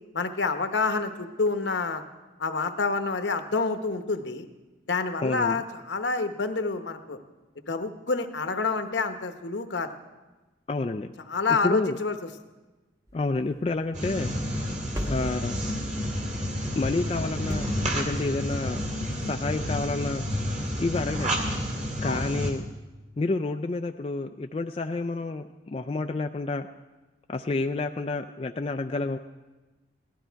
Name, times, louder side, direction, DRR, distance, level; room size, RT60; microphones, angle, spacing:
voice 1, 0.1-2.0 2.4-4.5 4.9-7.2 7.7-9.9 11.3-12.1 22.0-22.2, left 4 dB, 70° left, 8 dB, 0.9 m, -28 dB
voice 2, 5.2-5.6 10.7-11.1 11.6-12.0 13.1-14.3 15.0-15.6 16.8-17.7 17.9-18.8 19.2-20.2 20.8-21.3 22.0-22.7 23.2-26.7 27.3-29.2, left 3 dB, 30° left, 5 dB, 0.3 m, -29 dB
sound 1, 13.1-16.3 17.5-18.6, equal, 15° right, 1.0 m, -39 dB
sound 2, 13.9-22.5, equal, 40° right, 2.2 m, -30 dB
17.5 x 12.5 x 4.6 m, 1.2 s
head